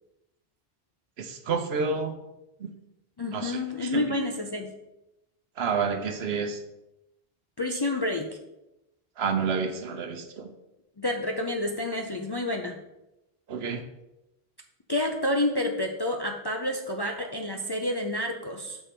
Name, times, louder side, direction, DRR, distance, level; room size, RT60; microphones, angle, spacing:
voice 1, 1.2-2.1 2.6-2.7 3.3-4.0 5.6-6.6 9.2-10.5 13.5-13.8, right 5 dB, 80° right, 7 dB, 1.0 m, -29 dB
voice 2, 3.2-4.7 7.6-8.4 11.0-12.8 14.9-18.8, left 1 dB, 40° left, 2 dB, 0.4 m, -29 dB
6.7 x 4.5 x 4.4 m, 0.92 s
omnidirectional pair, 1.1 m